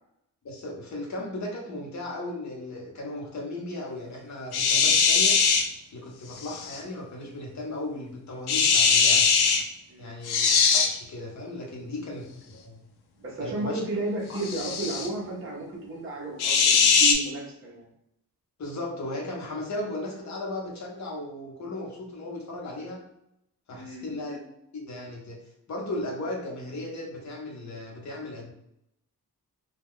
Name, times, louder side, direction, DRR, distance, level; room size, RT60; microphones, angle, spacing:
voice 1, 0.4-5.4 5.9-9.3 10.0-12.8 13.4-13.8 14.3-14.4 18.6-23.0 23.7-24.4 24.7-25.4 25.7-28.5, left 1 dB, 50° left, -1 dB, 0.8 m, -36 dB
sound 1, 4.5-5.6 6.4-6.8 8.5-9.6 10.3-10.9 14.4-15.1 16.4-17.1, left 5 dB, 80° left, 0.5 m, -21 dB
voice 2, 9.9-10.3 13.2-17.9 23.7-24.1, right 2 dB, 35° right, -4 dB, 0.8 m, -33 dB
2.3 x 2.2 x 3.5 m, 0.79 s
wide cardioid pair, 170°, 37 cm